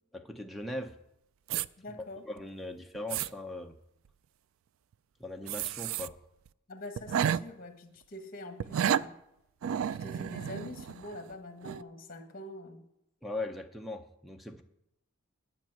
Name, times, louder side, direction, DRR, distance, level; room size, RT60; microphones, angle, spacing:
voice 1, 0.1-1.0 1.9-3.8 5.2-6.2 13.2-14.6, left 2 dB, ahead, 7 dB, 0.5 m, -40 dB
sound 1, 1.5-1.7 2.4-2.5 2.9-3.3 5.5-6.1 6.5-6.6 7.0-7.4 8.6-9.1 9.6-11.3 11.6-11.8, right 9 dB, 70° right, 0.3 m, -31 dB
voice 2, 1.8-2.2 6.7-9.1 10.0-12.9, left 1 dB, 40° left, 7 dB, 1.3 m, -45 dB
10.5 x 5.7 x 8.7 m, 0.83 s
head